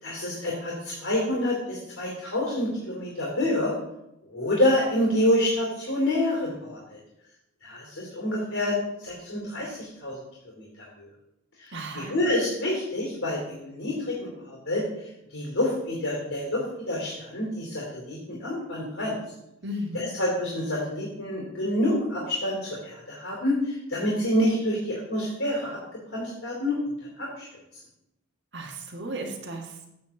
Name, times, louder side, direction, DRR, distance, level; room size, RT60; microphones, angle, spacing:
voice 1, 0.0-3.7 4.3-7.0 7.6-8.8 9.0-10.2 10.5-11.1 11.6-14.8 15.3-19.1 19.9-25.8 26.1-26.8 27.2-27.4, left 1 dB, 85° left, -3 dB, 2.9 m, -27 dB
voice 2, 11.7-12.1 19.6-20.1 28.5-29.9, right 1 dB, 55° right, 0 dB, 1.5 m, -35 dB
9.2 x 4.2 x 6.9 m, 0.84 s
head